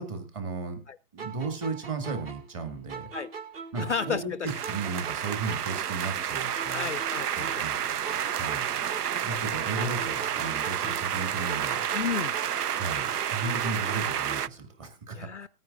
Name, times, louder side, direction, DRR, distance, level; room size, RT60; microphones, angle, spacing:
voice 1, 0.0-0.8 1.1-3.1 3.7-6.9 7.4-7.7 8.3-11.8 12.8-15.3, right 3 dB, 20° right, 7 dB, 1.8 m, -35 dB
sound 1, 1.2-4.3 4.6-7.8 8.0-11.2 11.5-14.6, right 5 dB, 40° right, 1.9 m, -42 dB
voice 2, 3.8-4.5 6.7-7.7 9.7-9.9 11.9-12.3 15.1-15.5, left 6 dB, 50° left, 15 dB, 0.5 m, -33 dB
sound 2, 4.5-14.5, right 9 dB, 80° right, 0.6 m, -30 dB
18.5 x 9.4 x 2.4 m, 0.33 s
hypercardioid pair, 165°, 47 cm